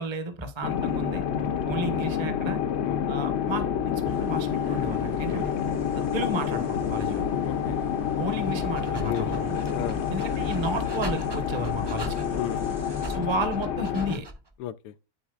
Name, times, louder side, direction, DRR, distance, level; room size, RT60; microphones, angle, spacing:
voice 1, 0.0-1.2 1.6-2.6 3.1-5.4 5.9-7.2 8.2-9.6 10.1-12.1 13.1-14.3, right 1 dB, 20° right, 0.9 m, -32 dB
sound 1, 0.6-14.1, left 8 dB, 60° left, 0.7 m, -28 dB
sound 2, 4.0-13.2, equal, 80° right, 2.1 m, -41 dB
voice 2, 7.5-7.8 9.0-9.3 9.7-10.0 12.4-12.8 14.6-14.9, left 10 dB, 90° left, 1.2 m, -34 dB
Dog, 8.5-14.5, right 1 dB, 40° right, 0.3 m, -41 dB
12.0 x 4.1 x 2.4 m
omnidirectional pair, 1.7 m